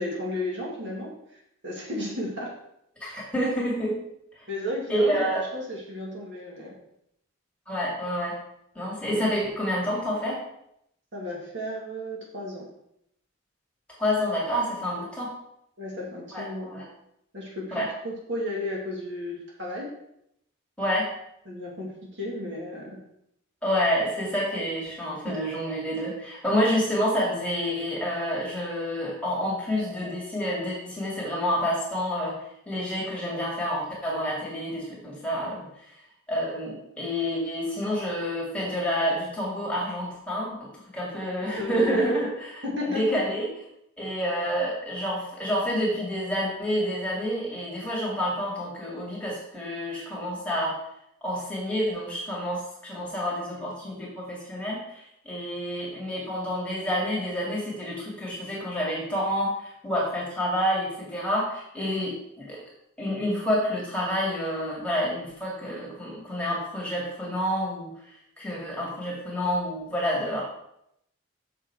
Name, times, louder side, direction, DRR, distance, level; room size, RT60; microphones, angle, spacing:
voice 1, 0.0-2.5 4.5-6.7 11.1-12.7 15.8-16.9 17.3-19.9 21.5-23.0 25.3-25.4 41.6-42.2 42.6-43.2, left 1 dB, 55° right, -3 dB, 2.3 m, -33 dB
voice 2, 3.0-4.0 4.4-4.5 4.9-5.4 7.7-8.4 8.7-10.4 14.0-15.3 16.3-16.8 17.7-17.9 20.8-21.1 23.6-32.4 32.7-35.6 36.3-40.7 40.9-42.6 42.9-43.5 44.0-50.7 51.2-62.6 63.0-67.9 68.4-70.4, equal, 5° left, -5 dB, 2.4 m, -28 dB
6.7 x 6.6 x 4.7 m, 0.77 s
head